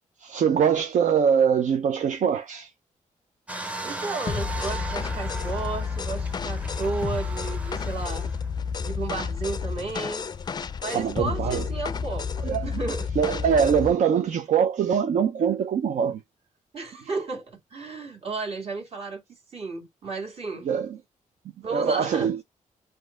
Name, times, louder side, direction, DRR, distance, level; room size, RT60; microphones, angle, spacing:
voice 1, 0.2-2.7 10.9-11.6 12.4-12.7 13.2-16.2 20.6-21.0 21.7-22.4, right 7 dB, 70° right, 0.6 m, -23 dB
sound 1, 3.5-8.5 9.1-9.2, right 2 dB, 10° right, 0.7 m, -37 dB
voice 2, 3.8-8.3 8.8-10.3 10.8-13.1 16.7-19.2 19.5-20.7 21.6-22.3, right 3 dB, 50° right, 2.1 m, -33 dB
sound 2, 4.3-14.0, left 6 dB, 30° left, 0.4 m, -31 dB
4.2 x 2.7 x 4.3 m
cardioid pair, 120°, 13 cm